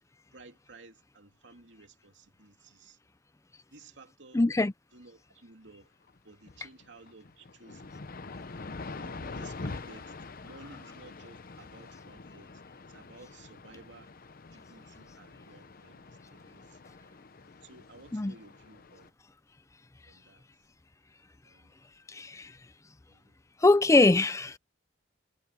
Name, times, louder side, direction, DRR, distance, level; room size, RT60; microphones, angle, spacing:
voice 1, 0.3-3.0 3.7-4.4 4.9-5.9 6.2-8.0 9.0-12.6 12.9-14.1 14.5-16.0 16.3-16.8 17.6-19.1 20.1-20.4 21.4-21.7 23.1-23.4, right 2 dB, 70° right, 3.1 m, -54 dB
voice 2, 4.3-4.7 18.1-18.3 22.1-22.5 23.6-24.6, left 2 dB, 15° left, 0.5 m, -23 dB
sound 1, 6.1-6.2 6.5-19.1, left 3 dB, 50° left, 0.8 m, -45 dB
head